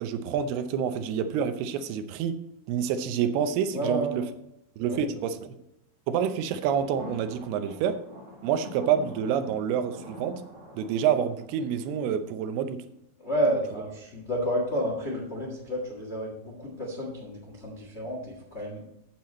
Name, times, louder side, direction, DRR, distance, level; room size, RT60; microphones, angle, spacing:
voice 1, 0.0-2.4 2.7-4.2 4.8-5.5 6.1-8.0 8.4-10.4 10.8-12.8, right 8 dB, 90° right, 9 dB, 2.7 m, -28 dB
voice 2, 3.7-4.3 4.8-5.1 13.2-18.8, right 1 dB, 65° left, -2 dB, 0.6 m, -30 dB
sound 1, 6.6-12.0, left 1 dB, 45° right, 2.2 m, -45 dB
9.0 x 7.7 x 4.1 m, 0.80 s
omnidirectional pair, 4.5 m